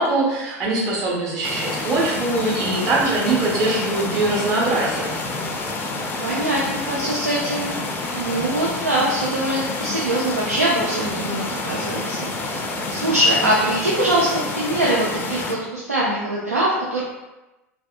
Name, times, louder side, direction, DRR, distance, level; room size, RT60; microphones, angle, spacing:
voice 1, 0.0-5.1, right 2 dB, 40° right, -5 dB, 1.0 m, -22 dB
sound 1, 1.4-15.5, left 2 dB, 25° left, 0.4 m, -28 dB
voice 2, 6.2-7.7 8.1-12.3 12.9-17.0, right 1 dB, 85° right, -6 dB, 0.4 m, -22 dB
2.6 x 2.2 x 2.4 m, 1.0 s
figure-of-eight pair, 80°, 8 cm